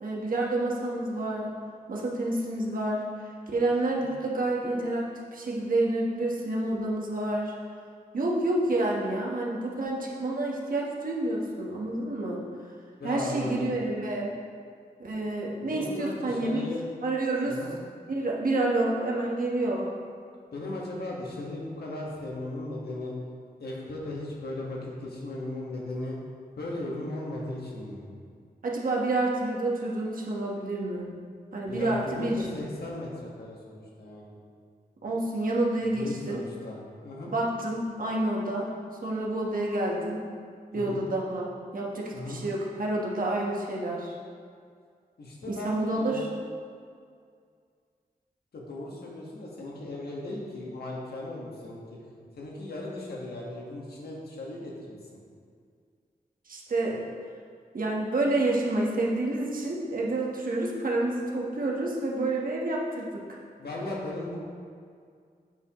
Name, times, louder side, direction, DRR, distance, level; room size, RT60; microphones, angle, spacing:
voice 1, 0.0-1.6 1.9-7.6 8.1-12.4 13.0-14.3 15.0-16.7 17.0-17.5 18.1-19.9 28.6-31.1 31.5-32.4 35.0-36.4 37.3-38.7 39.0-40.2 40.7-44.1 45.5-46.2 56.5-57.0 57.7-63.4, right 2 dB, 60° right, -3 dB, 1.2 m, -29 dB
voice 2, 13.0-13.7 15.6-16.8 17.5-17.7 20.5-23.1 23.6-26.2 26.6-28.0 31.7-34.3 35.9-36.8 37.0-37.3 40.7-41.0 42.1-42.4 45.2-46.3 48.5-52.1 52.4-55.2 63.6-64.4, left 1 dB, 80° left, -3 dB, 1.5 m, -37 dB
8.1 x 7.0 x 3.1 m, 2.2 s
wide cardioid pair, 130°, 16 cm